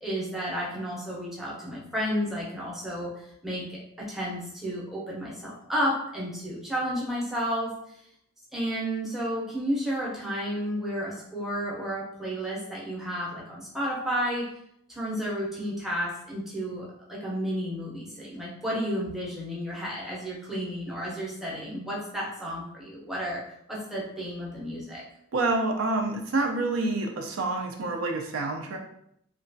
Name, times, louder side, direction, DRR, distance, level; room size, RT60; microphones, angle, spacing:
voice 1, 0.0-7.7 8.5-14.5 14.9-23.4 23.7-25.0, equal, ahead, -6 dB, 0.6 m, -32 dB
voice 2, 25.3-28.8, right 2 dB, 75° right, 2 dB, 0.4 m, -27 dB
2.9 x 2.3 x 2.6 m, 0.74 s
head